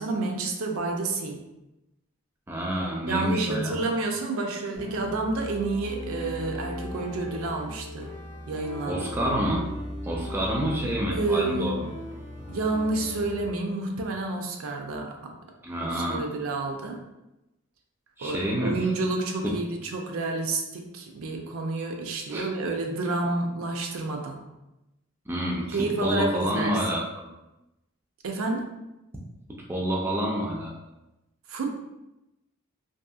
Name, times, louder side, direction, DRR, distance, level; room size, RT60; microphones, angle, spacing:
voice 1, 0.0-1.4 3.1-8.1 8.5-9.3 11.1-11.8 12.5-15.3 15.8-17.0 18.2-24.4 25.7-26.8 28.2-28.7 31.5-31.7, right 3 dB, 75° right, 2 dB, 0.4 m, -29 dB
voice 2, 2.5-3.8 8.8-9.6 10.0-11.9 15.6-16.3 18.2-18.8 19.4-19.6 22.3-22.5 25.3-27.3 29.7-30.7, equal, 10° right, -3 dB, 0.3 m, -28 dB
sound 1, 4.8-13.5, left 1 dB, 35° left, 0.8 m, -38 dB
2.7 x 2.6 x 2.3 m, 0.94 s
head